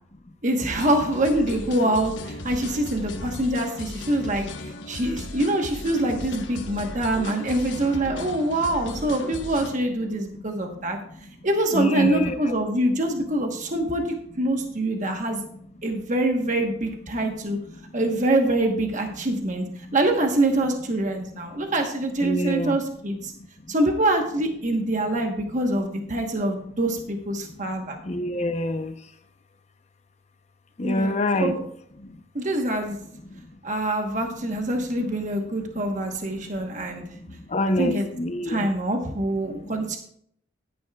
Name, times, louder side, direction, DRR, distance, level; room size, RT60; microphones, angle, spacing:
voice 1, 0.4-4.4 4.9-11.0 11.4-15.4 15.8-17.6 17.9-19.6 19.9-23.3 23.7-28.0 30.8-31.1 31.4-31.6 32.3-33.0 33.6-37.0 37.8-38.1 38.4-40.0, right 1 dB, 40° right, 3 dB, 1.1 m, -25 dB
sound 1, 0.7-9.8, left 2 dB, 70° left, 1.0 m, -37 dB
voice 2, 11.7-12.5 22.2-22.8 28.1-28.9 30.8-31.6 37.5-38.7, left 1 dB, 35° left, 8 dB, 0.7 m, -25 dB
14.0 x 10.0 x 2.3 m, 0.67 s
head